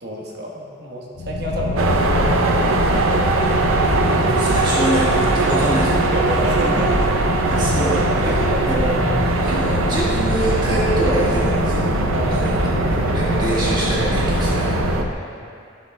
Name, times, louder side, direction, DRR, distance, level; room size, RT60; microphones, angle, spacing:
voice 1, 0.0-3.2 6.1-7.1 8.2-8.7 12.1-12.5 15.1-15.4, equal, 55° right, -2 dB, 1.2 m, -29 dB
sound 1, 1.2-15.1, left 3 dB, 75° left, 0.4 m, -25 dB
sound 2, 1.8-15.0, right 3 dB, 90° right, 0.6 m, -21 dB
voice 2, 4.3-6.0 7.4-8.3 8.7-8.8 9.4-11.9 12.3-12.6 12.9-14.7, right 1 dB, 20° right, -8 dB, 1.6 m, -25 dB
12.0 x 7.1 x 2.2 m, 2.4 s
head